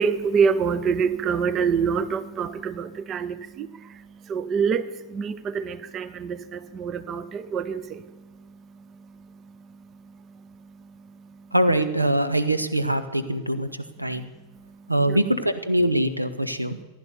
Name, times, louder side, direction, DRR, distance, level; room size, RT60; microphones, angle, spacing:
voice 1, 0.0-11.5 14.1-15.2, right 6 dB, 30° right, 15 dB, 0.8 m, -28 dB
voice 2, 11.5-13.7 14.0-14.3 14.9-16.8, right 1 dB, 85° right, 11 dB, 0.9 m, -23 dB
15.0 x 11.0 x 7.1 m, 1.2 s
figure-of-eight pair, 90°, 0 cm